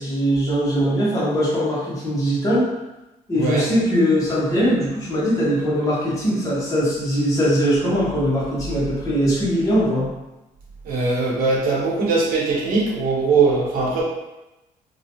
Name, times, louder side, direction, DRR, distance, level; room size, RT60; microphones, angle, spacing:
voice 1, 0.0-2.7 3.3-10.1, equal, 20° left, -8 dB, 0.9 m, -21 dB
voice 2, 3.3-3.7 10.8-14.0, right 4 dB, 80° right, -4 dB, 0.9 m, -20 dB
2.8 x 2.2 x 2.9 m, 1.0 s
cardioid pair, 145°, 15 cm